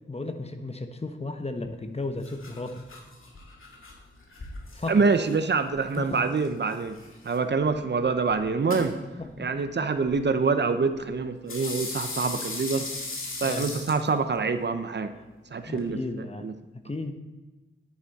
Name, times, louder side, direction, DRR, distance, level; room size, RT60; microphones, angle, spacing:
voice 1, 0.1-2.8 4.7-5.0 5.9-6.2 9.2-9.5 13.4-13.7 15.2-15.3 15.6-16.5 16.7-17.1, left 2 dB, 30° left, 7 dB, 1.1 m, -34 dB
sound 1, 1.6-15.9, left 3 dB, 80° left, 2.0 m, -41 dB
voice 2, 4.9-7.0 7.2-8.9 9.4-12.8 13.4-15.1 15.5-16.0 16.4-16.5, right 4 dB, 55° right, 9 dB, 0.8 m, -25 dB
9.9 x 9.4 x 4.2 m, 1.2 s
wide cardioid pair, 70°, 21 cm